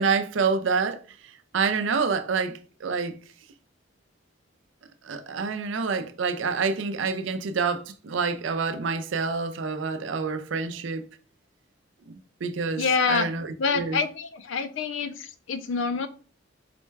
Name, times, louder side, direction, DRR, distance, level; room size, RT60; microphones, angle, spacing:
voice 1, 0.0-3.1 5.0-11.0 12.1-14.0, right 5 dB, 70° right, 0.5 m, -27 dB
voice 2, 12.8-13.3 13.6-16.1, left 5 dB, 70° left, 0.5 m, -26 dB
4.2 x 2.2 x 4.4 m
head